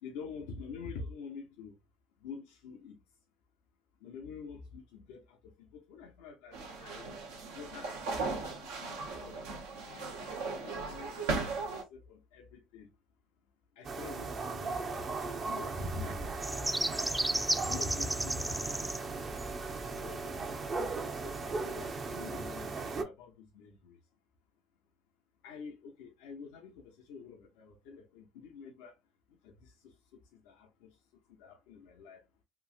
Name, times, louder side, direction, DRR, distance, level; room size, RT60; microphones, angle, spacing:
voice 1, 0.0-1.7 2.2-3.0 4.0-7.2 7.5-8.4 8.8-9.4 9.9-10.1 10.6-12.9 13.8-14.8 15.4-16.4 17.7-18.8 19.8-20.5 20.8-24.0 25.4-29.0 29.4-29.9 30.3-30.9 31.4-32.2, left 5 dB, 80° left, 0.5 m, -48 dB
sound 1, 6.5-11.8, right 3 dB, 85° right, 0.7 m, -37 dB
sound 2, 13.8-23.0, right 3 dB, 50° right, 0.6 m, -37 dB
sound 3, 16.4-22.1, right 1 dB, 10° right, 0.3 m, -36 dB
2.9 x 2.5 x 2.3 m
hypercardioid pair, 60°, 0 cm